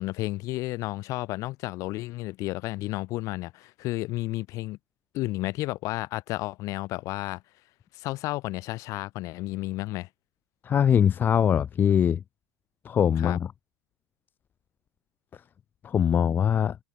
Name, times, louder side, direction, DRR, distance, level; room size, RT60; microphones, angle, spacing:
voice 1, 0.0-4.8 5.1-7.4 7.9-10.1 13.2-13.4, left 19 dB, 50° left, 2.7 m, -32 dB
voice 2, 10.6-12.2 12.8-13.5 15.8-16.8, left 8 dB, 25° left, 0.6 m, -22 dB
figure-of-eight pair, 80°, 7 cm